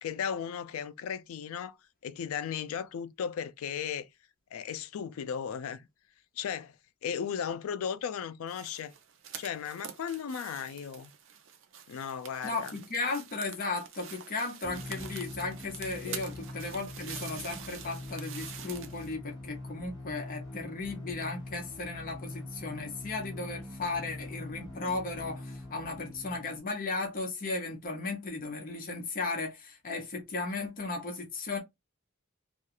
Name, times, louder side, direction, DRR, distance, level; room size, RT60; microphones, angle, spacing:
voice 1, 0.0-1.7 2.0-4.1 4.5-5.9 6.4-6.7 7.0-8.9 9.4-11.1 11.9-12.7 16.0-16.2, left 7 dB, 85° left, 0.3 m, -36 dB
sound 1, 8.5-19.2, right 8 dB, 65° right, 0.5 m, -46 dB
voice 2, 12.4-31.6, left 3 dB, 45° left, 0.6 m, -35 dB
sound 2, 14.6-26.6, left 2 dB, 20° left, 1.0 m, -43 dB
2.4 x 2.3 x 2.8 m
head